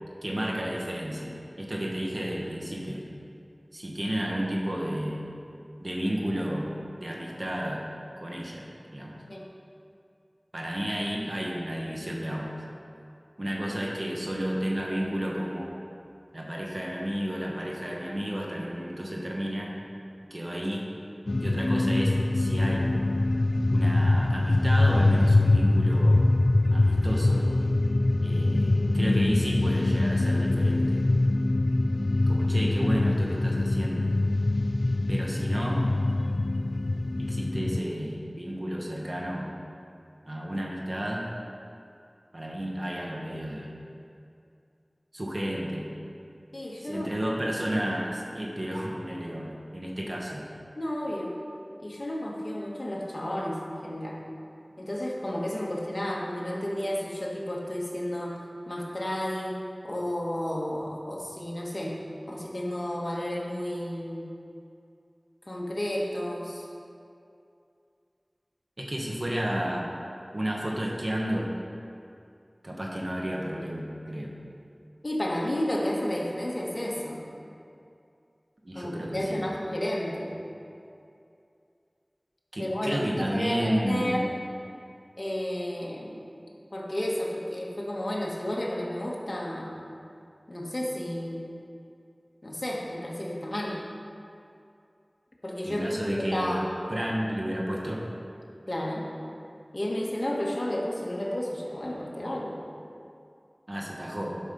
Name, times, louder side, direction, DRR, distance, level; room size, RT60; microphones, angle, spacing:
voice 1, 0.2-3.0 3.7-5.2 5.8-6.7 7.0-7.8 8.2-9.2 10.5-12.5 13.4-15.7 16.3-19.7 20.3-20.8 21.4-22.9 23.7-26.3 26.7-27.5 28.2-31.0 32.3-34.1 35.1-35.8 37.2-39.5 40.3-41.3 42.3-43.7 45.1-45.9 46.8-50.4 68.8-70.0 70.3-71.5 72.6-74.4 78.6-79.4 82.5-84.2 95.6-98.1 103.7-104.4, equal, 50° right, -2 dB, 1.6 m, -32 dB
sound 1, 21.3-37.8, left 2 dB, 75° left, 0.3 m, -24 dB
voice 2, 46.5-47.1 50.8-51.4 51.8-54.2 54.8-59.6 59.8-62.0 62.3-64.3 65.5-66.7 75.0-77.3 78.7-80.4 82.6-84.3 85.2-86.2 86.7-89.7 90.5-91.5 92.4-93.8 95.4-96.7 98.7-99.1 99.7-102.6, left 1 dB, 50° left, -3 dB, 1.7 m, -32 dB
11.0 x 5.8 x 5.5 m, 2.5 s
wide cardioid pair, 40°, 0 cm